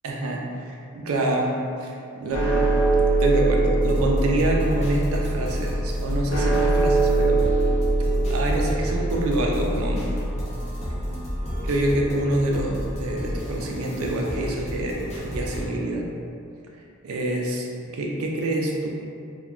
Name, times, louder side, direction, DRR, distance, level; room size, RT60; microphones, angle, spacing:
voice 1, 0.0-7.4 8.3-10.0 11.6-16.0 17.0-17.7 17.9-19.0, right 1 dB, 85° right, 0 dB, 0.4 m, -26 dB
sound 1, 2.3-12.7, right 2 dB, 80° left, 0.9 m, -23 dB
sound 2, 3.8-15.7, equal, 30° left, 0.5 m, -34 dB
3.0 x 2.2 x 2.4 m, 2.5 s
head